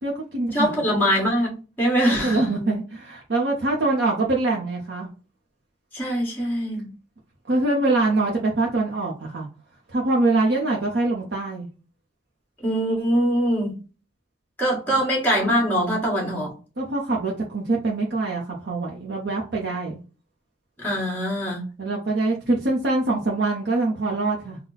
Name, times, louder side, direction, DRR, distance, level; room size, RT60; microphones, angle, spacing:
voice 1, 0.0-0.7 2.0-5.1 7.5-9.5 9.9-11.7 14.9-15.0 16.8-20.0 21.8-24.6, right 2 dB, 60° right, -3 dB, 0.8 m, -24 dB
voice 2, 0.5-2.8 5.9-6.9 12.6-13.8 14.6-16.5 20.8-21.6, equal, 10° left, -3 dB, 1.8 m, -23 dB
4.0 x 2.2 x 4.0 m, 0.35 s
head